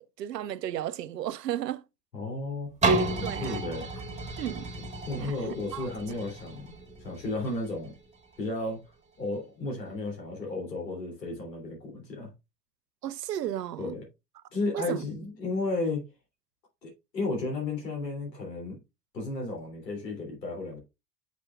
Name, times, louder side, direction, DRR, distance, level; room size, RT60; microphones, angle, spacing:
voice 1, 0.0-1.8 3.2-3.6 4.4-4.7 5.2-5.9 13.0-14.0 14.7-15.0, right 12 dB, 80° right, 0.6 m, -34 dB
voice 2, 2.1-2.7 3.1-3.9 5.1-6.7 7.0-7.9 8.4-8.8 9.2-12.3 13.8-14.0 14.5-16.0 16.8-18.8 19.1-20.8, left 2 dB, 80° left, 3.1 m, -33 dB
sound 1, 2.8-8.6 9.1-9.2, right 2 dB, 15° right, 1.9 m, -32 dB
7.0 x 6.1 x 2.3 m
figure-of-eight pair, 70°, 49 cm